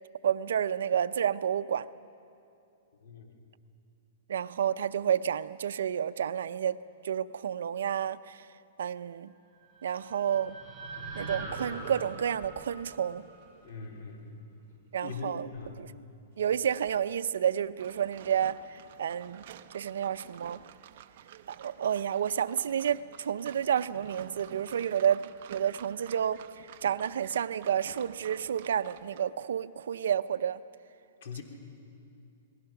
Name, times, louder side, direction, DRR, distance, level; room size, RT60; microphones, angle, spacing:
voice 1, 0.2-1.9 4.3-8.4 8.8-9.3 9.8-10.5 11.2-13.3 14.9-15.5 15.8-15.9 16.4-19.4 19.7-20.6 21.5-26.4 26.8-30.6, right 9 dB, 85° right, 0.6 m, -30 dB
voice 2, 3.0-3.4 13.6-14.4 15.0-15.8 31.2-31.4, left 5 dB, 60° left, 3.4 m, -41 dB
sound 1, 9.5-13.8, right 2 dB, 10° left, 4.5 m, -43 dB
sound 2, 11.5-15.7 16.2-16.3 16.7-16.9, right 6 dB, 30° right, 4.3 m, -51 dB
sound 3, 17.8-29.2, right 11 dB, 50° right, 0.7 m, -51 dB
28.5 x 20.0 x 5.9 m
hypercardioid pair, 165°, 0 cm